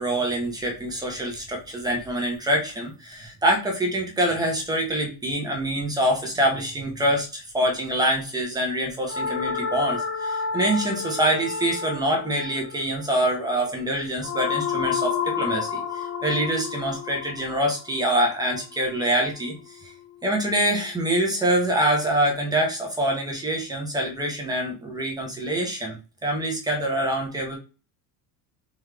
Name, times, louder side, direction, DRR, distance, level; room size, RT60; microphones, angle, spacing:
voice 1, 0.0-19.5 19.8-19.9 20.2-26.0 26.2-27.6, right 1 dB, 10° right, 0 dB, 0.8 m, -25 dB
sound 1, 9.1-19.3, left 6 dB, 30° left, 0.6 m, -30 dB
3.7 x 3.1 x 3.3 m, 0.33 s
cardioid pair, 165°, 44 cm